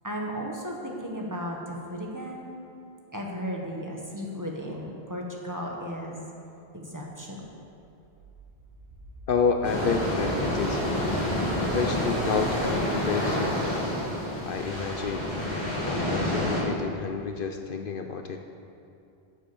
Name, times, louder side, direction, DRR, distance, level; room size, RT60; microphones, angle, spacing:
voice 1, 0.0-2.5 3.1-6.3 6.7-7.4, equal, 20° right, -1 dB, 1.5 m, -35 dB
sound 1, 7.5-12.7, equal, 85° right, 1.7 m, -42 dB
voice 2, 9.3-10.9 11.7-13.8 14.4-18.4, left 5 dB, 60° left, 5 dB, 0.8 m, -30 dB
sound 2, 9.6-16.6, left 1 dB, 45° left, 2.9 m, -28 dB
11.0 x 7.7 x 7.0 m, 2.7 s
omnidirectional pair, 1.1 m